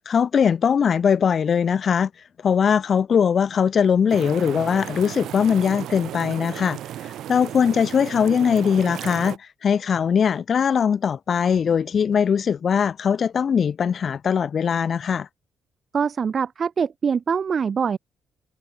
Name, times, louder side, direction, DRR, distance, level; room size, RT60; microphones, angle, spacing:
voice 1, 0.0-2.1 2.4-15.3, left 7 dB, 50° left, 0.8 m, -21 dB
sound 1, 4.1-9.4, right 12 dB, 75° right, 2.1 m, -34 dB
voice 2, 15.9-18.0, right 6 dB, 45° right, 6.7 m, -23 dB
cardioid pair, 90°, 0 cm